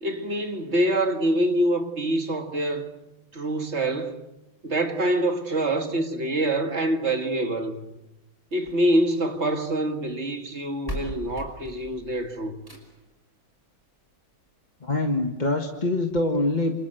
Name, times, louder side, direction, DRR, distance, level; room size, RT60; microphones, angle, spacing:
voice 1, 0.0-2.9 3.3-4.2 4.6-7.9 8.5-12.6, right 1 dB, 35° right, 2.1 m, -25 dB
sound 1, 8.5-9.7 10.5-10.6 10.9-13.1 14.5-14.6 15.1-15.2 15.4-15.5 16.1-16.2, right 1 dB, 10° right, 5.2 m, -39 dB
voice 2, 14.8-16.7, left 2 dB, 25° left, 1.6 m, -24 dB
28.5 x 26.5 x 7.9 m
omnidirectional pair, 2.2 m